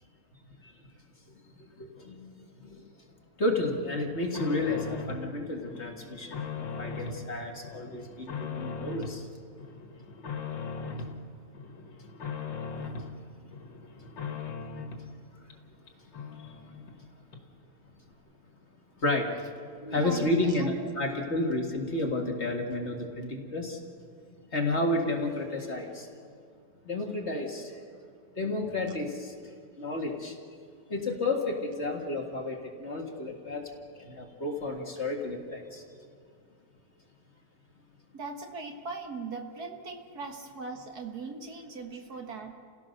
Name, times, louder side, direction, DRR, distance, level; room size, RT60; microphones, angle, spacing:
voice 1, 1.8-2.2 2.6-2.8 3.4-9.2 19.0-19.3 19.9-23.8 24.5-26.1 26.9-27.7 28.4-29.3 29.8-30.3 30.9-33.7 34.0-35.8, left 2 dB, 35° left, 1 dB, 2.1 m, -31 dB
sound 1, 3.7-5.3 5.6-7.2 7.6-9.2 9.6-11.2 11.5-13.1 13.5-15.1 15.5-15.6 15.9-16.0 16.1-17.0 17.3-17.4, left 5 dB, 75° left, 2.5 m, -39 dB
voice 2, 19.8-20.9 28.5-28.8 38.1-42.5, right 4 dB, 55° right, 3 dB, 2.1 m, -40 dB
29.5 x 16.5 x 6.5 m, 2.3 s
omnidirectional pair, 2.0 m